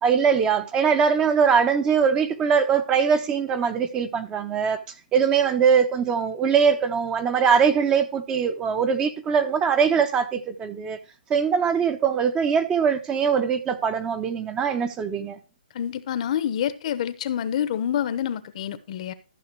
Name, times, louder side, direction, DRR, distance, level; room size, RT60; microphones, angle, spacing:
voice 1, 0.0-4.8 5.1-11.0 11.3-15.4, right 6 dB, 15° right, 0.9 m, -22 dB
voice 2, 15.7-19.1, left 9 dB, 45° left, 1.0 m, -27 dB
13.5 x 5.8 x 4.6 m
hypercardioid pair, 150°, 5 cm